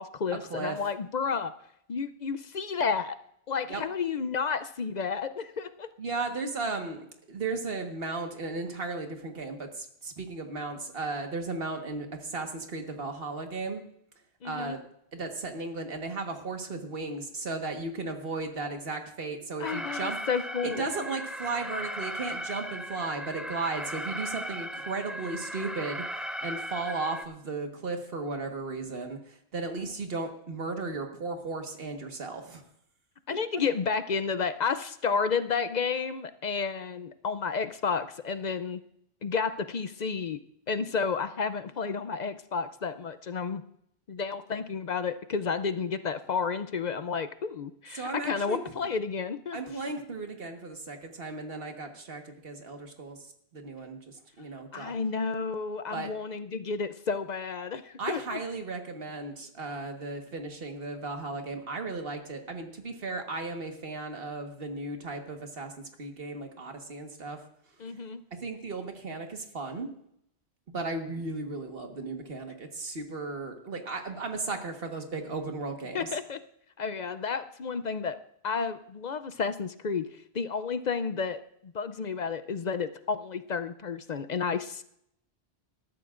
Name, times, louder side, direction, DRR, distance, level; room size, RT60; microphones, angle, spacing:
voice 1, 0.0-1.5 1.9-3.2 3.5-5.9 14.4-14.8 19.6-20.9 33.3-38.8 39.2-40.4 40.7-43.6 44.1-49.6 54.7-58.4 67.8-68.2 75.9-76.4 76.8-78.2 78.4-80.1 80.3-84.8, left 5 dB, 50° left, 11 dB, 0.6 m, -31 dB
voice 2, 6.0-13.8 14.4-14.8 15.1-20.2 20.6-26.0 26.4-32.6 47.9-48.6 49.5-53.2 53.5-54.9 55.9-56.1 58.0-67.4 68.4-69.9 70.7-76.1, right 3 dB, 60° right, 4 dB, 1.7 m, -35 dB
Alarm, 19.6-27.2, equal, ahead, 0.4 m, -37 dB
19.5 x 13.0 x 2.5 m, 0.72 s
omnidirectional pair, 1.1 m